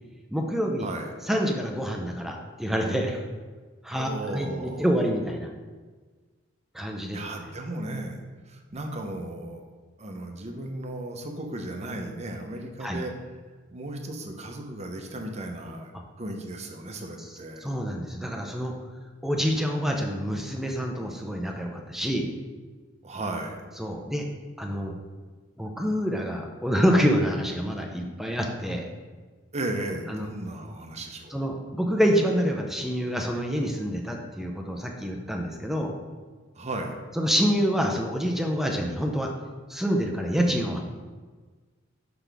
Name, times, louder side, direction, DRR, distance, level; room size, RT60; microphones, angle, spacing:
voice 1, 0.3-0.8 1.3-3.2 3.8-5.5 6.7-7.5 12.8-13.0 17.6-18.7 19.2-22.3 23.8-24.2 24.6-24.9 25.6-28.9 30.1-30.2 31.3-36.0 37.2-39.3 39.7-40.8, equal, ahead, 2 dB, 0.6 m, -27 dB
voice 2, 0.8-1.1 3.9-4.9 7.1-8.2 8.5-9.7 10.0-13.1 13.7-15.9 16.2-17.7 23.0-23.6 29.5-31.4 36.5-37.0, right 1 dB, 35° right, 3 dB, 0.8 m, -35 dB
5.9 x 5.8 x 3.4 m, 1.4 s
head